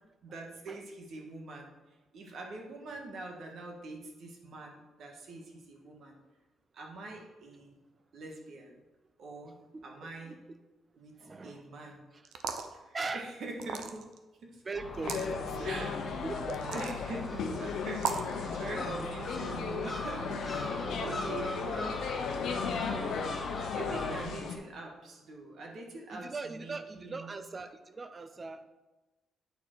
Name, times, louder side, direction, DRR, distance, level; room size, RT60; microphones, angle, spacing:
voice 1, 0.2-6.2 6.7-7.8 8.1-8.8 9.2-9.6 9.8-10.4 11.0-12.0 12.7-14.1 14.4-14.6 15.6-16.0 16.7-22.1 22.8-23.4 23.7-27.4, right 2 dB, 65° right, 1 dB, 1.6 m, -44 dB
voice 2, 10.2-10.6 11.2-11.7 12.1-12.2 12.9-13.3 14.6-16.9 18.8-18.9 20.8-21.2 26.1-28.7, right 3 dB, 30° right, 10 dB, 0.6 m, -41 dB
sound 1, 12.3-12.7 13.6-14.2 14.9-15.3 16.5-17.0 18.0-18.3, right 6 dB, 80° right, 0.6 m, -35 dB
Gull seagull, 14.7-24.2, left 3 dB, 30° left, 1.3 m, -40 dB
sound 2, 15.0-24.6, left 5 dB, 75° left, 0.9 m, -36 dB
8.7 x 4.3 x 4.6 m, 1.1 s
cardioid pair, 90°, 0 cm